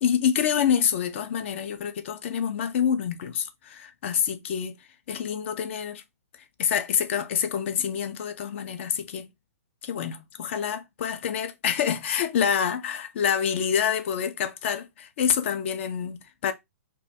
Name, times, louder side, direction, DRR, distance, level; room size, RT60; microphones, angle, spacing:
voice 1, 0.0-4.8 5.1-6.0 6.6-9.3 9.8-16.5, left 8 dB, 50° left, 0.4 m, -27 dB
2.2 x 2.2 x 2.7 m
hypercardioid pair, 130°, 8 cm